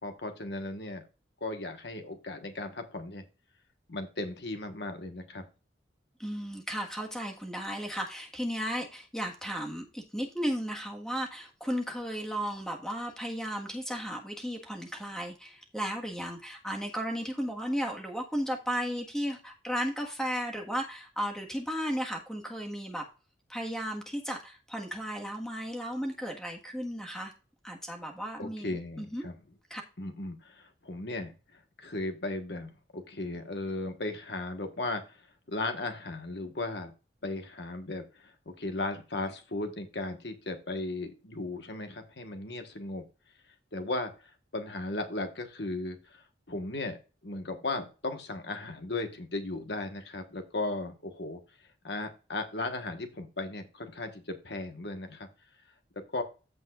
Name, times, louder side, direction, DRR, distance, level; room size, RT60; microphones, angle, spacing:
voice 1, 0.0-1.0 1.4-3.2 3.9-5.4 28.4-29.3 30.0-36.9 37.2-43.0 43.7-46.2 46.5-47.0 47.2-51.4 51.8-55.3 56.1-56.2, left 2 dB, 65° left, 6 dB, 1.4 m, -36 dB
voice 2, 6.2-23.0 23.5-27.3 27.6-29.2 29.7-29.8, equal, 5° left, 1 dB, 1.5 m, -35 dB
14.5 x 5.3 x 2.5 m, 0.32 s
head